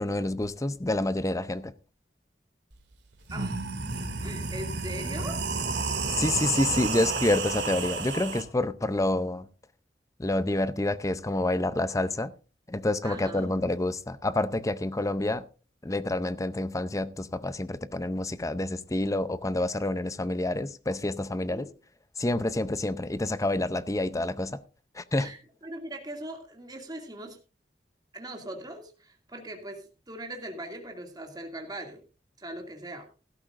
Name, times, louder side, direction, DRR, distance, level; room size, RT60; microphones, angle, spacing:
voice 1, 0.0-1.7 6.2-9.5 10.2-12.3 12.7-15.4 15.8-21.7 22.2-24.6 24.9-25.3, left 2 dB, 20° left, 0.6 m, -28 dB
sound 1, 2.7-2.8 3.2-8.4, right 4 dB, 75° right, 2.6 m, -31 dB
voice 2, 3.3-3.6 4.2-5.4 13.0-13.5 21.5-21.7 25.2-27.4 28.1-32.0 32.4-33.1, right 1 dB, 25° right, 2.4 m, -40 dB
16.5 x 13.0 x 2.6 m
head